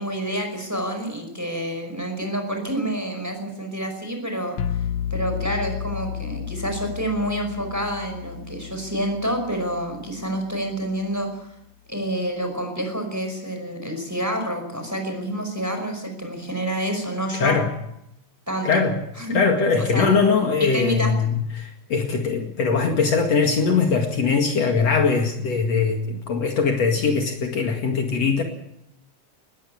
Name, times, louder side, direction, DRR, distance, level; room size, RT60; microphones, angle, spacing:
voice 1, 0.0-4.6 5.1-11.5 11.9-17.6 18.5-18.8 19.2-19.4 19.8-20.1 20.6-21.1, right 1 dB, 5° right, 5 dB, 5.3 m, -28 dB
sound 1, 4.6-10.4, left 10 dB, 75° left, 2.6 m, -32 dB
voice 2, 18.6-18.9 19.3-28.4, left 5 dB, 60° left, 3 dB, 3.1 m, -21 dB
20.0 x 16.5 x 8.6 m, 0.81 s
omnidirectional pair, 3.4 m